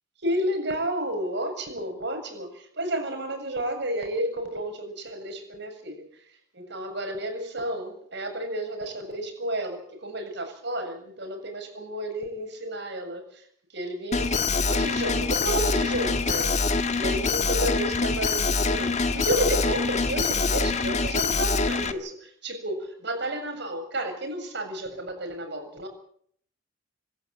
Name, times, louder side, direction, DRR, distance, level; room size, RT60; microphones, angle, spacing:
voice 1, 0.2-6.0 6.5-13.4 13.7-25.9, right 1 dB, 60° right, 6 dB, 7.5 m, -31 dB
Alarm, 14.1-21.9, left 4 dB, 35° left, 1.6 m, -25 dB
27.0 x 13.0 x 8.9 m, 0.63 s
head